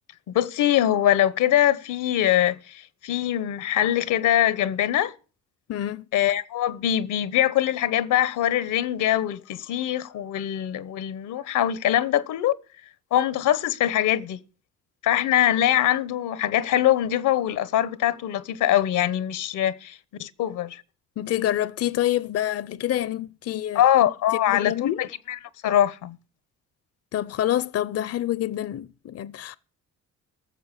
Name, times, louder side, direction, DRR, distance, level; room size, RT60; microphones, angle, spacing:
voice 1, 0.3-5.1 6.1-12.5 13.1-14.4 15.0-20.8 23.7-25.1 25.6-26.2, left 12 dB, 85° left, 1.0 m, -23 dB
voice 2, 5.7-6.1 21.2-23.8 24.3-25.0 27.1-29.6, left 12 dB, 55° left, 0.6 m, -27 dB
15.0 x 6.9 x 8.3 m
cardioid pair, 90°, 30 cm